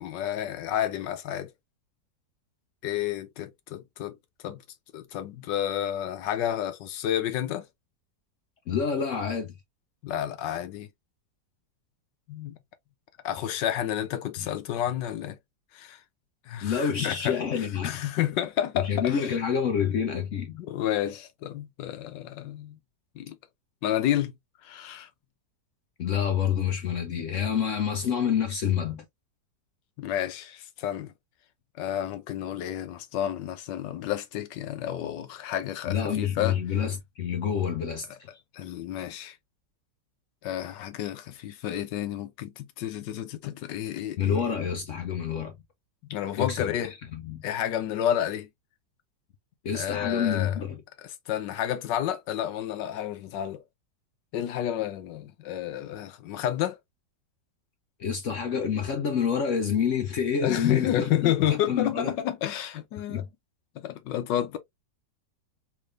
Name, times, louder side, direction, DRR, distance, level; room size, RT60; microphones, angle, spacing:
voice 1, 0.0-1.5 2.8-4.2 4.4-4.6 4.9-7.7 10.0-10.9 12.3-12.6 13.2-15.4 15.7-16.0 16.5-17.4 17.8-19.3 20.6-22.8 23.1-23.4 23.8-24.3 24.6-25.1 30.0-31.1 31.8-36.6 38.5-39.4 40.4-44.5 46.1-46.9 47.4-48.5 49.7-50.6 51.0-53.6 54.3-56.8 60.4-63.2 63.8-64.6, left 11 dB, 80° left, 1.3 m, -30 dB
voice 2, 8.7-9.5 14.4-14.5 16.6-17.9 18.8-20.6 26.0-29.0 35.9-38.3 44.2-45.6 46.4-46.7 47.1-47.4 49.6-50.8 58.0-62.1 63.1-63.3, left 7 dB, 65° left, 0.8 m, -28 dB
3.6 x 3.2 x 2.4 m
omnidirectional pair, 1.9 m